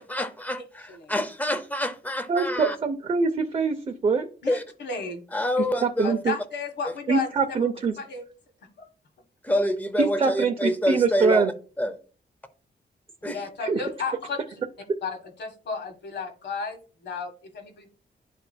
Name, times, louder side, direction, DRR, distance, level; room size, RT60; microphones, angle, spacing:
voice 1, 0.0-2.7 4.5-4.6 5.3-6.1 9.4-11.4 11.8-11.9 13.2-13.4, left 1 dB, 10° left, 9 dB, 0.6 m, -27 dB
voice 2, 0.6-1.2 4.4-5.2 6.0-7.7 8.0-8.2 8.8-8.9 13.2-14.4 15.0-17.9, left 4 dB, 80° left, 5 dB, 1.5 m, -34 dB
voice 3, 2.3-4.3 5.8-6.3 7.1-7.9 10.0-11.5 13.6-13.8, right 4 dB, 35° right, 4 dB, 0.5 m, -24 dB
11.5 x 4.1 x 2.2 m, 0.38 s
wide cardioid pair, 160°, 17 cm